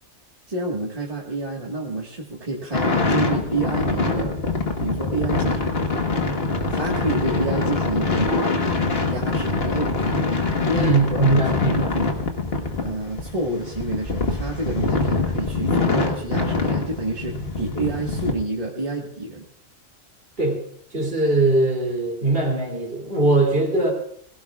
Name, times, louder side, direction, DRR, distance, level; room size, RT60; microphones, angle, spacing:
voice 1, 0.5-4.4 4.8-5.8 6.7-8.3 9.0-9.9 10.6-11.3 11.6-12.1 12.8-19.5, right 2 dB, 30° right, -3 dB, 1.8 m, -28 dB
sound 1, 2.7-18.3, left 3 dB, 55° left, 1.6 m, -24 dB
voice 2, 10.7-12.0 20.4-20.6 20.9-23.9, right 2 dB, 50° right, 0 dB, 3.1 m, -21 dB
20.5 x 16.5 x 2.4 m, 0.68 s
omnidirectional pair, 1.3 m